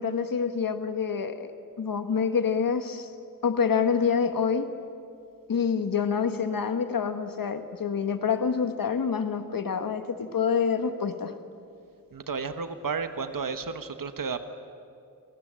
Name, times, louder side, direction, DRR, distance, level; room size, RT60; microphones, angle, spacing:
voice 1, 0.0-1.5 1.8-3.1 3.4-4.7 5.5-11.3, left 6 dB, 70° left, 9 dB, 1.4 m, -27 dB
voice 2, 12.1-14.4, right 5 dB, 70° right, 9 dB, 1.3 m, -32 dB
28.5 x 18.5 x 7.6 m, 2.4 s
wide cardioid pair, 75°, 35 cm